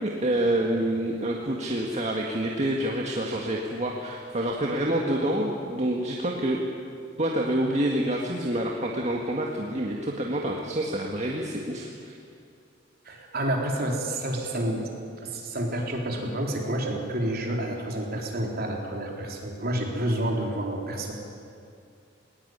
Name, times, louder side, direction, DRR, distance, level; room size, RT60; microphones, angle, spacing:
voice 1, 0.0-6.6 7.2-12.2, right 1 dB, 35° right, -1 dB, 1.8 m, -27 dB
voice 2, 13.0-14.9 15.2-21.1, right 1 dB, 55° right, 0 dB, 3.9 m, -29 dB
20.0 x 19.0 x 9.6 m, 2.4 s
head